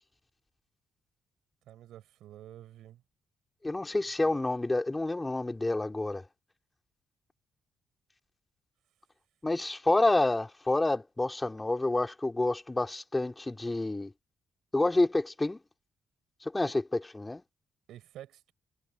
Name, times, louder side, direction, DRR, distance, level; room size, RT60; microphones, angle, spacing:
voice 1, 1.7-3.0 4.0-4.3 17.9-18.5, right 12 dB, 75° right, 5.5 m, -50 dB
voice 2, 3.6-6.2 9.4-14.1 14.7-15.6 16.4-17.4, left 2 dB, 20° left, 3.4 m, -28 dB
supercardioid pair, 55°, 0 cm